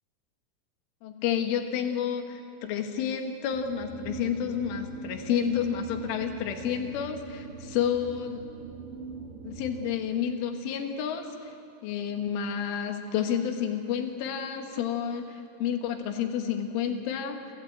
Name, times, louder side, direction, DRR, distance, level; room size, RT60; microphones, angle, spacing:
voice 1, 1.0-8.4 9.4-11.5 11.8-17.4, left 8 dB, 85° left, 5 dB, 4.1 m, -30 dB
sound 1, 3.5-10.0, right 4 dB, 65° right, 4.0 m, -41 dB
29.0 x 14.5 x 8.8 m, 2.7 s
omnidirectional pair, 5.4 m